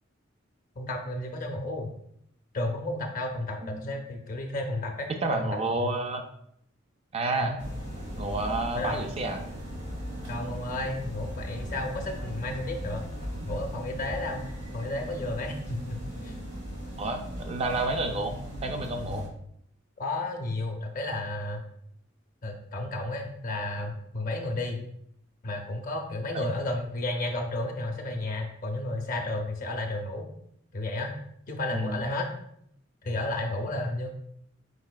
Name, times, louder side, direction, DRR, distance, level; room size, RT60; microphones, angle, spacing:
voice 1, 0.8-1.9 2.5-5.9 7.4-7.6 8.7-9.0 10.3-13.0 13.4-16.3 20.0-21.6 22.4-24.8 25.4-30.3 30.7-31.1 31.5-32.3 33.0-34.1, left 2 dB, 45° left, 3 dB, 0.5 m, -32 dB
voice 2, 5.2-6.3 7.1-7.6 8.2-9.4 17.0-18.3 18.6-19.2 26.3-26.4 31.7-32.0, right 2 dB, 30° right, 5 dB, 0.3 m, -30 dB
sound 1, 7.6-19.3, equal, 60° right, 1.4 m, -38 dB
5.0 x 4.0 x 2.2 m, 0.71 s
head